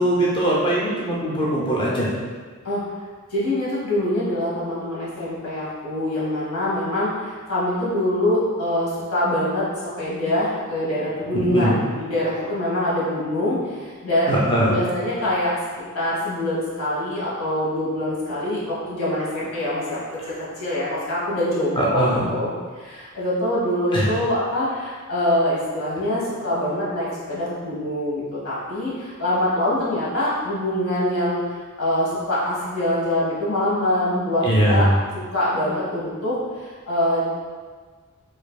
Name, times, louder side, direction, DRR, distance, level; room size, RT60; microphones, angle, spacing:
voice 1, 0.0-2.1 11.3-11.8 14.3-14.8 21.8-22.3 23.9-24.1 34.4-34.9, right 1 dB, 20° left, -5 dB, 0.5 m, -21 dB
voice 2, 3.3-9.6 10.0-14.4 14.7-15.6 15.9-20.0 20.2-22.5 22.7-31.4 31.8-34.9 35.3-37.2, left 1 dB, 85° left, -8 dB, 1.3 m, -24 dB
4.6 x 2.5 x 2.2 m, 1.5 s
head